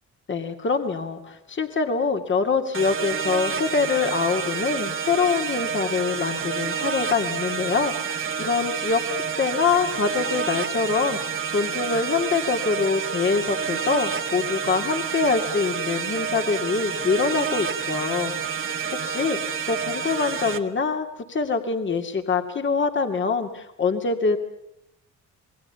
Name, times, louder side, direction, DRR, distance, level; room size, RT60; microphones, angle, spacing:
voice 1, 0.3-19.4 19.7-24.4, left 5 dB, 40° left, 5 dB, 2.5 m, -25 dB
sound 1, 2.7-20.6, right 6 dB, 45° right, 1.8 m, -29 dB
28.0 x 21.0 x 7.0 m, 0.80 s
cardioid pair, 90°, 30 cm